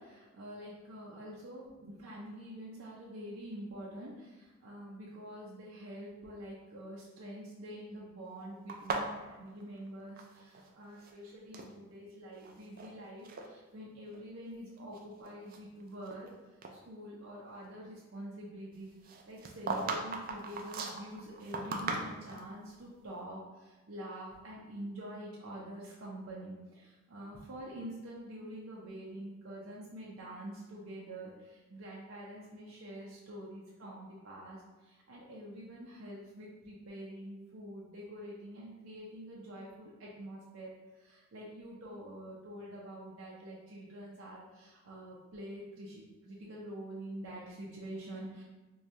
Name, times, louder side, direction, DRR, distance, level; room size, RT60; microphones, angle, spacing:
voice 1, 0.0-16.3 16.7-48.4, right 1 dB, 85° right, -4 dB, 0.6 m, -46 dB
sound 1, 8.7-10.7 10.9-11.7 12.4-12.9 13.2-13.5 14.1-14.2 14.8-16.3 16.6-16.8 19.0-22.5, right 3 dB, 45° right, 0.4 m, -38 dB
4.7 x 2.3 x 2.7 m, 1.2 s
head